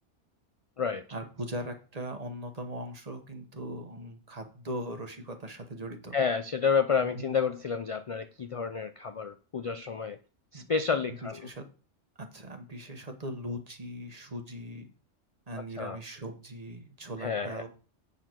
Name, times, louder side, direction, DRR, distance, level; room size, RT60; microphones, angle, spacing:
voice 1, 1.1-6.1 7.0-7.3 10.5-10.7 11.1-11.6 12.2-14.9 15.5-17.7, right 1 dB, 35° right, 6 dB, 1.2 m, -39 dB
voice 2, 6.1-10.2 10.5-11.4 15.8-16.0 17.2-17.6, left 6 dB, 55° left, 10 dB, 0.3 m, -30 dB
7.9 x 6.8 x 4.5 m, 0.38 s
omnidirectional pair, 1.2 m